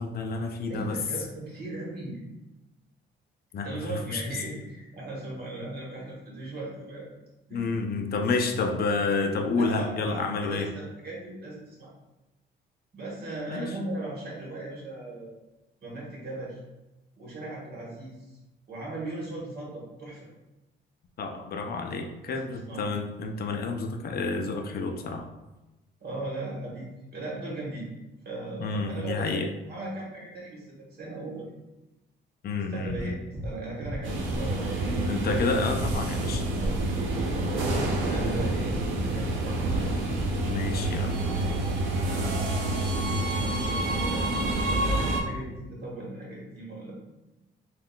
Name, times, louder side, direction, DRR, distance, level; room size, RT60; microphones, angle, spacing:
voice 1, 0.0-1.0 3.5-4.4 7.5-10.7 13.5-13.7 21.2-25.2 28.6-29.5 32.4-33.2 35.1-36.4 40.5-41.1, left 3 dB, 50° left, 4 dB, 0.5 m, -29 dB
voice 2, 0.7-2.2 3.6-7.1 7.5-7.6 9.6-11.9 12.9-15.3 15.8-16.6 17.2-18.3 18.7-20.3 22.3-22.8 26.0-27.9 28.2-31.5 32.7-34.7 36.6-37.2 38.1-39.9 43.6-46.9, right 2 dB, 55° right, -4 dB, 1.3 m, -38 dB
sound 1, 32.8-33.0 33.3-33.5 33.8-34.0 34.3-34.5 34.8-34.9 35.3-35.4 35.7-35.9 36.2-36.4 36.7-36.9 37.2-37.3 37.6-37.8 38.1-38.3 38.6-38.8 39.1-39.3 39.6-39.7 40.1-40.2, left 1 dB, 20° right, 0.8 m, -34 dB
sound 2, 34.0-45.2, right 2 dB, 80° right, 0.6 m, -28 dB
3.6 x 2.3 x 2.2 m, 1.0 s
cardioid pair, 90°, 20 cm